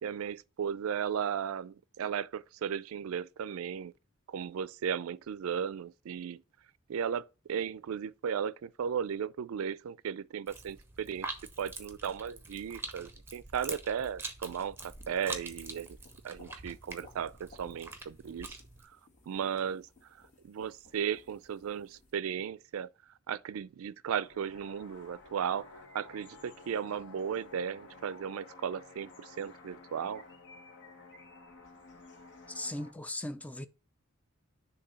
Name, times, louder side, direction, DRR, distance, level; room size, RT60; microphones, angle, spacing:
voice 1, 0.0-3.9 4.3-6.4 6.9-11.3 11.6-16.0 16.2-18.6 19.3-19.9 20.4-22.9 23.3-30.2, right 8 dB, 80° right, 0.4 m, -36 dB
sound 1, 10.5-18.9, right 3 dB, 10° right, 0.8 m, -45 dB
sound 2, 14.7-22.1, left 3 dB, 35° left, 1.8 m, -60 dB
sound 3, 24.2-32.9, left 3 dB, 60° left, 1.2 m, -53 dB
voice 2, 32.5-33.7, left 1 dB, 5° left, 0.4 m, -38 dB
6.7 x 2.7 x 5.4 m
head